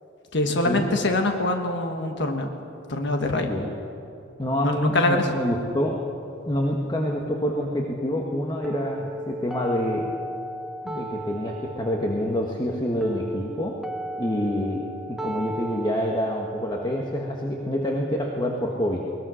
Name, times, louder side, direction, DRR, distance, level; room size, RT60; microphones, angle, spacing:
voice 1, 0.3-2.5 2.9-3.5 4.6-5.3, left 2 dB, 60° left, 4 dB, 1.5 m, -24 dB
voice 2, 3.4-3.7 4.4-5.9 6.5-10.0 10.8-13.7 14.2-19.0, equal, 20° left, 0 dB, 1.5 m, -27 dB
sound 1, 8.6-18.6, right 1 dB, ahead, 1.1 m, -36 dB
22.0 x 20.0 x 6.4 m, 2.6 s
head